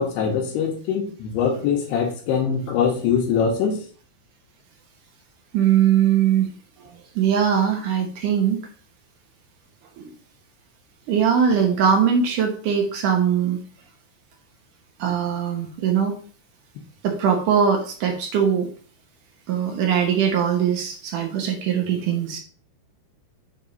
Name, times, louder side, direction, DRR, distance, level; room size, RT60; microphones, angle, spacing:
voice 1, 0.0-3.8, left 6 dB, 85° left, -3 dB, 3.1 m, -23 dB
voice 2, 5.5-6.5 6.8-8.6 10.0-10.1 11.1-13.6 15.0-16.2 17.0-18.7 19.5-22.4, right 8 dB, 65° right, 3 dB, 2.2 m, -21 dB
7.2 x 3.6 x 5.2 m, 0.41 s
omnidirectional pair, 4.7 m